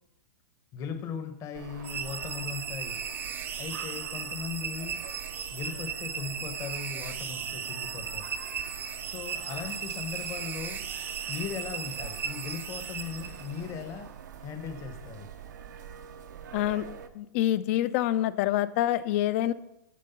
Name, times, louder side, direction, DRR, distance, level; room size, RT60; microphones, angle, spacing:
voice 1, 0.7-3.0 3.6-5.0 5.5-8.3 9.1-10.8 11.3-14.1 14.4-15.3, left 6 dB, 30° left, 8 dB, 0.8 m, -38 dB
sound 1, 1.5-17.1, right 9 dB, 80° right, 0.6 m, -45 dB
sound 2, 1.8-13.7, right 7 dB, 20° right, 0.5 m, -36 dB
voice 2, 16.5-16.9 17.2-19.5, left 13 dB, 45° left, 15 dB, 0.4 m, -26 dB
7.5 x 3.7 x 5.6 m, 0.86 s
hypercardioid pair, 135°, 10 cm